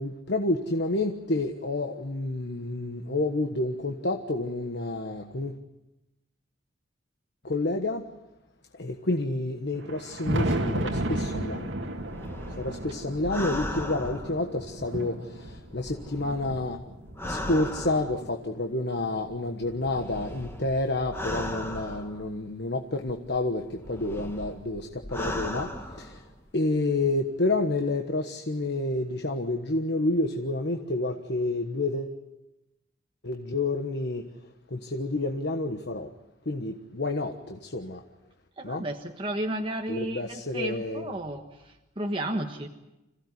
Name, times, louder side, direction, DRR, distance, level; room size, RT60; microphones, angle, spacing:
voice 1, 0.0-5.6 7.4-8.0 8.7-11.7 12.6-16.8 17.2-26.2 26.5-32.2 33.2-34.3 34.7-36.1 36.4-38.0 38.6-38.8 39.9-41.2, left 2 dB, 60° left, 1.4 m, -29 dB
Thunder, 9.7-18.3 19.0-20.7 21.8-21.9 22.5-22.6 24.4-24.5 25.9-26.0 27.6-27.7, right 1 dB, 75° right, 2.4 m, -34 dB
sound 1, 11.7-15.0 15.5-18.4 19.3-22.5 23.1-26.5 26.8-26.9, left 1 dB, 15° left, 2.0 m, -38 dB
voice 2, 38.6-42.7, right 1 dB, 30° right, 1.4 m, -33 dB
26.5 x 16.5 x 9.6 m
head